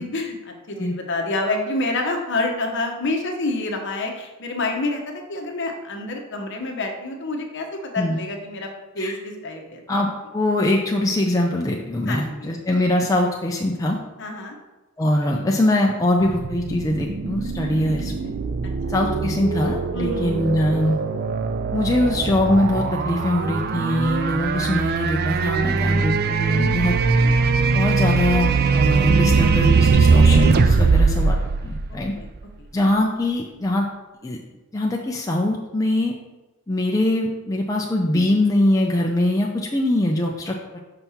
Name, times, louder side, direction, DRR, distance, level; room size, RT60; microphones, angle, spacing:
voice 1, 0.0-8.7 8.9-9.8 12.1-12.5 14.2-14.6 19.9-20.2 26.9-27.5 31.9-32.3 32.6-32.7, left 2 dB, 55° left, 3 dB, 1.0 m, -28 dB
voice 2, 9.9-14.0 15.0-18.3 18.9-21.0 21.7-26.9 27.7-31.4 31.6-32.1 32.7-33.9 34.2-34.4 34.7-36.1 36.7-40.8, left 1 dB, 15° left, -1 dB, 0.5 m, -22 dB
sound 1, 16.2-32.4, right 4 dB, 45° right, 0.4 m, -21 dB
5.8 x 5.3 x 4.2 m, 1.1 s
head